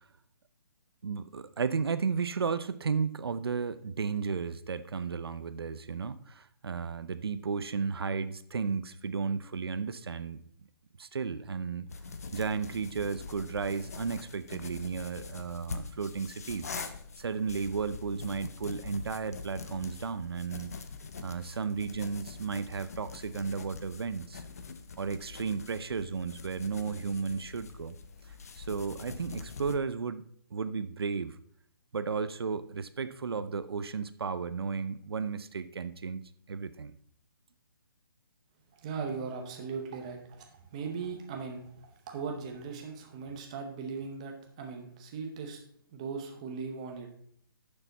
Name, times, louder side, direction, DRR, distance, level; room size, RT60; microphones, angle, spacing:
voice 1, 1.0-10.4 11.0-11.9 12.3-16.7 17.2-20.7 21.2-24.4 25.0-28.0 28.6-30.2 30.5-31.4 31.9-36.9, right 5 dB, 90° right, 13 dB, 0.7 m, -34 dB
sound 1, 11.9-29.8, left 5 dB, 40° left, 0.7 m, -44 dB
voice 2, 38.7-45.6 45.9-47.1, right 5 dB, 15° right, 3 dB, 0.8 m, -39 dB
9.9 x 6.9 x 4.0 m, 0.63 s
hypercardioid pair, 175°, 12 cm